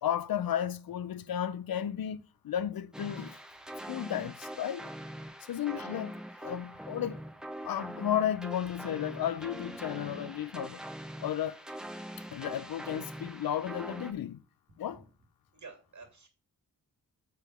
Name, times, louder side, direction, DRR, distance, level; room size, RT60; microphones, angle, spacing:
voice 1, 0.0-3.4 3.9-4.9 5.5-6.1 6.4-7.2 7.6-10.8 11.2-11.6 12.3-14.4 14.8-15.0, left 10 dB, 75° left, 0.6 m, -33 dB
sound 1, 2.9-14.1, right 1 dB, ahead, 0.7 m, -43 dB
voice 2, 15.5-16.3, right 4 dB, 50° right, 2.3 m, -51 dB
7.1 x 4.0 x 5.5 m
wide cardioid pair, 120°, 36 cm